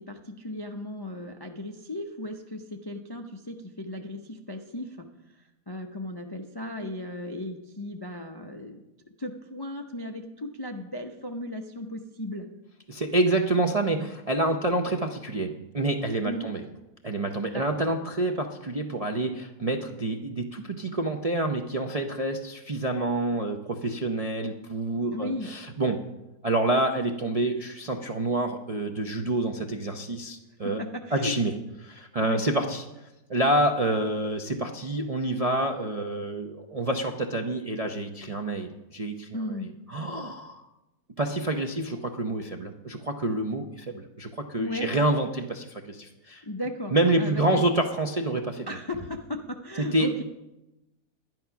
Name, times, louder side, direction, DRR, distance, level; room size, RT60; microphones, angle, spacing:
voice 1, 0.0-5.1 5.3-8.8 9.2-12.5 16.2-16.5 17.5-17.6 25.1-25.5 30.6-31.3 32.2-32.4 39.3-39.7 44.6-44.9 46.4-47.6 48.7-50.1, left 1 dB, 40° left, 3 dB, 0.3 m, -36 dB
voice 2, 12.9-16.6 17.0-26.0 26.4-30.8 31.1-31.5 31.8-32.8 33.3-39.3 39.9-40.7 41.2-46.4 46.9-48.8 49.8-50.2, right 2 dB, 45° right, 2 dB, 0.4 m, -27 dB
11.0 x 11.0 x 5.8 m, 0.97 s
omnidirectional pair, 1.7 m